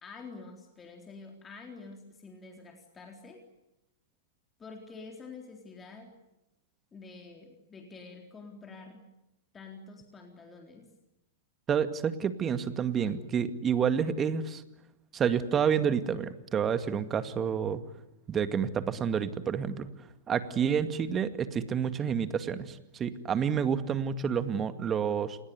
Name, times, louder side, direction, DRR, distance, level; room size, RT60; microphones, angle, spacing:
voice 1, 0.0-3.4 4.6-6.1 6.9-9.0 9.5-10.9 13.0-13.2, left 4 dB, 20° left, 2 dB, 3.9 m, -48 dB
voice 2, 11.7-14.6 15.1-17.8 18.3-19.9 20.3-25.4, right 7 dB, 25° right, 11 dB, 2.1 m, -29 dB
28.0 x 20.5 x 9.6 m, 0.91 s
hypercardioid pair, 110°, 0 cm